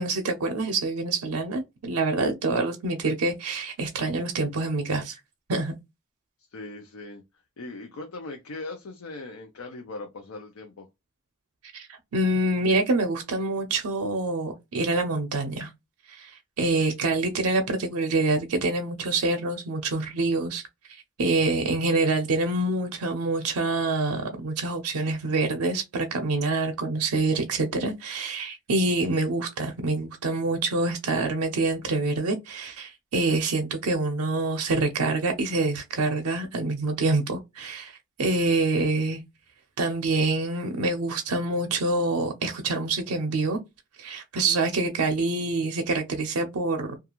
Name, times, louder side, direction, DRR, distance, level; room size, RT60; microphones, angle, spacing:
voice 1, 0.0-5.2 5.5-5.8 11.7-15.7 16.1-20.6 20.9-39.2 39.8-43.6 44.0-47.0, right 2 dB, 90° right, 0.5 m, -26 dB
voice 2, 6.5-7.2 7.6-10.9, left 2 dB, 75° left, 0.5 m, -39 dB
2.4 x 2.3 x 2.8 m
head